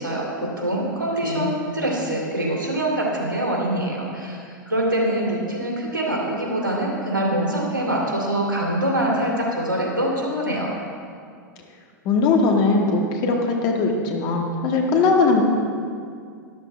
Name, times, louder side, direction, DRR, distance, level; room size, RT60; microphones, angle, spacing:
voice 1, 0.0-10.7, right 1 dB, 85° right, -2 dB, 2.4 m, -24 dB
voice 2, 12.1-15.4, left 4 dB, 40° left, 1 dB, 1.7 m, -20 dB
12.5 x 11.5 x 3.3 m, 2.2 s
figure-of-eight pair, 95°, 11 cm